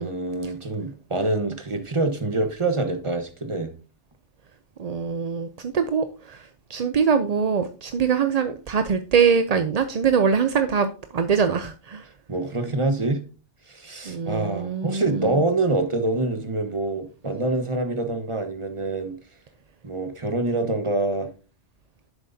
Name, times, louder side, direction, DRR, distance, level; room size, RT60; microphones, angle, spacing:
voice 1, 0.0-3.7 12.3-13.2 13.7-19.1 19.8-21.3, right 2 dB, 25° right, 1.3 m, -26 dB
voice 2, 4.8-6.4 6.7-10.9 11.1-12.0 14.1-15.3, right 6 dB, 45° right, 0.5 m, -23 dB
10.5 x 7.5 x 2.7 m
omnidirectional pair, 1.2 m